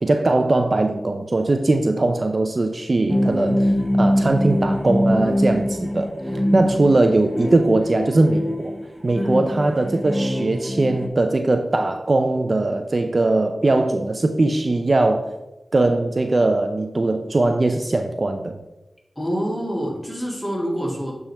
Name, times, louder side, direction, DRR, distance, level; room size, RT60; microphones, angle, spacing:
voice 1, 0.0-6.1 6.5-8.8 9.0-15.3 15.7-18.6, right 2 dB, 50° right, 7 dB, 0.5 m, -20 dB
sound 1, 3.1-11.1, equal, 5° right, 1.1 m, -23 dB
voice 2, 6.2-6.7 9.1-9.5 19.2-21.1, equal, 10° left, -3 dB, 2.6 m, -27 dB
8.9 x 3.7 x 4.3 m, 1.0 s
cardioid pair, 45°, 0 cm